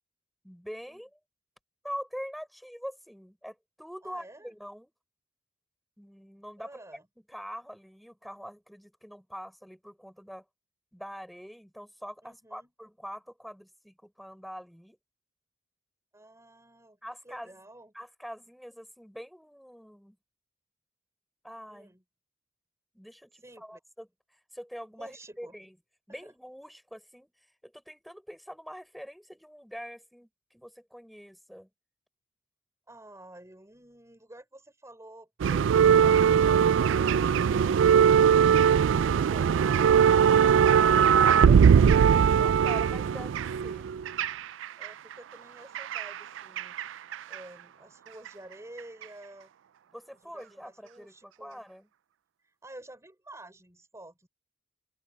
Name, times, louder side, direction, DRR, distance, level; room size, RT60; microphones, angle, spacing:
voice 1, 0.4-1.2 1.8-4.9 6.0-6.8 7.3-10.4 10.9-15.0 17.0-17.5 17.9-20.2 21.4-22.0 22.9-25.8 26.1-31.7 40.9-43.9 49.9-51.9, equal, ahead, 4.7 m, -44 dB
voice 2, 4.0-4.5 6.6-7.0 12.2-12.7 16.1-17.0 17.2-17.9 21.7-22.0 23.4-23.8 25.0-25.5 26.1-26.3 32.9-40.0 44.8-46.7 47.3-49.5 50.3-51.6 52.6-54.3, right 1 dB, 15° right, 5.0 m, -50 dB
sound 1, 35.4-44.9 45.7-46.9 47.1-47.3 48.3-48.4, right 7 dB, 75° right, 0.3 m, -21 dB
open air
head